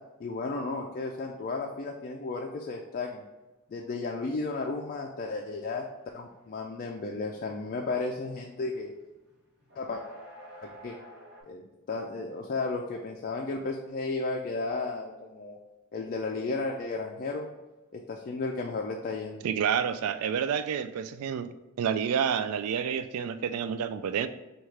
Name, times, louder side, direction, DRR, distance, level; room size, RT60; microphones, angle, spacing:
voice 1, 0.2-3.2 3.7-5.8 6.1-8.9 9.8-10.0 10.6-11.0 11.5-15.6 15.9-17.5 17.9-19.4, left 3 dB, 40° left, 1 dB, 0.3 m, -34 dB
sound 1, 6.0-6.1 6.3-8.7 9.1-11.4, equal, 50° right, 1.0 m, -49 dB
voice 2, 19.4-21.5 21.8-24.3, right 7 dB, 70° right, 12 dB, 0.3 m, -29 dB
6.3 x 2.3 x 3.3 m, 1.1 s
head